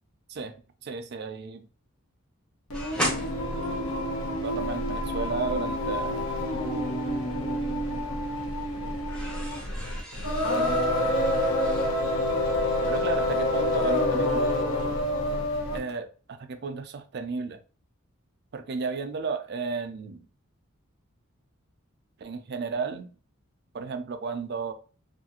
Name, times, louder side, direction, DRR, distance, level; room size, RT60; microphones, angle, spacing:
voice 1, 0.8-1.7 4.4-6.2 12.9-14.5 15.7-17.6 18.5-20.2 22.2-23.1 23.7-24.7, right 4 dB, 50° right, 0.3 m, -33 dB
Singing, 2.7-15.9, left 1 dB, 85° left, 0.7 m, -27 dB
sound 1, 2.7-4.8 7.0-7.9 8.2-14.3 14.6-14.8, equal, 5° left, 0.5 m, -38 dB
2.6 x 2.4 x 2.8 m
head